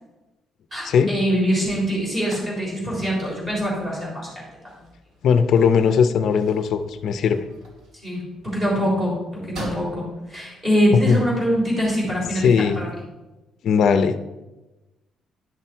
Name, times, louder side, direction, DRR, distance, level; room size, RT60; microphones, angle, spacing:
voice 1, 0.7-4.7 8.0-12.9, equal, 20° right, -4 dB, 3.6 m, -24 dB
sound 1, 0.7-13.0, right 1 dB, 85° right, 2.9 m, -45 dB
voice 2, 5.2-7.4 11.1-11.2 12.3-12.8 13.6-14.2, left 6 dB, 55° left, 9 dB, 0.6 m, -18 dB
10.5 x 6.0 x 4.5 m, 1.1 s
cardioid pair, 165°, 0 cm